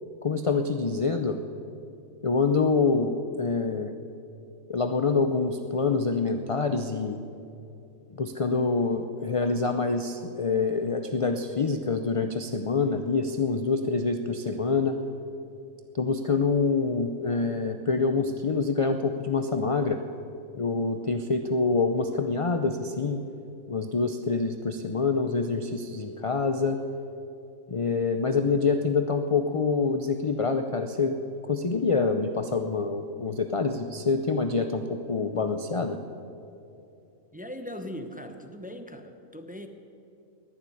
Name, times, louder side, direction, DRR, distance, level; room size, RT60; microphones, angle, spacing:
voice 1, 0.2-1.4 2.2-3.9 4.7-7.2 8.1-15.0 15.9-20.0 20.5-23.2 23.7-26.8 27.7-31.2 31.5-36.0, left 4 dB, 45° left, 7 dB, 0.4 m, -26 dB
voice 2, 37.3-39.7, equal, 10° right, 6 dB, 0.6 m, -39 dB
19.0 x 7.3 x 9.9 m, 2.7 s
omnidirectional pair, 1.4 m